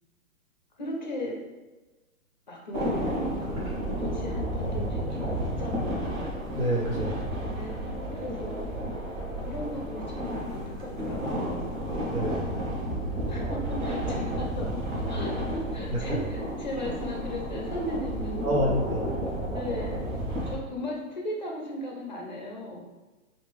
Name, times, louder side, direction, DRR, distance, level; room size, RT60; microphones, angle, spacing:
voice 1, 0.8-1.4 2.5-6.3 7.4-8.7 9.4-11.7 12.5-20.0 20.4-22.8, left 1 dB, 35° left, -1 dB, 0.5 m, -37 dB
sound 1, 2.7-20.6, equal, 65° right, 1.1 m, -32 dB
voice 2, 6.5-7.2 12.1-12.5 15.9-16.2 18.4-19.1, equal, 85° right, -2 dB, 1.3 m, -28 dB
3.5 x 2.4 x 3.4 m, 1.2 s
hypercardioid pair, 160°, 42 cm